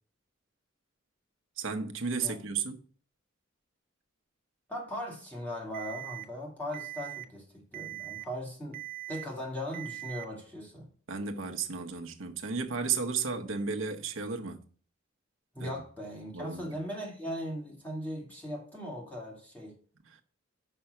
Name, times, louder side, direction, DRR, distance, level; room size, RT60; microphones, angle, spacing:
voice 1, 1.6-2.8 11.1-14.6 15.6-15.8 16.3-16.8 20.1-20.2, right 5 dB, 75° right, 0.9 m, -33 dB
voice 2, 4.7-8.8 9.1-10.9 15.5-19.8, equal, 10° left, 2.2 m, -39 dB
Alarm, 5.7-6.2 6.7-7.2 7.7-8.2 8.7-9.2 9.7-10.2, right 17 dB, 45° right, 0.6 m, -41 dB
5.7 x 5.4 x 6.6 m
head